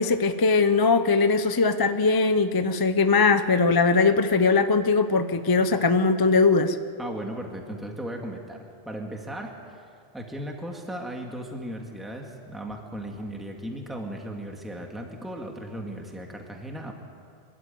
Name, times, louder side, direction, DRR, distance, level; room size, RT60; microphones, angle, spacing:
voice 1, 0.0-6.8, left 4 dB, 25° left, 10 dB, 0.6 m, -20 dB
voice 2, 7.0-9.8 10.1-16.9, right 1 dB, ahead, 1 dB, 2.0 m, -36 dB
25.5 x 12.5 x 9.3 m, 2.3 s
omnidirectional pair, 1.1 m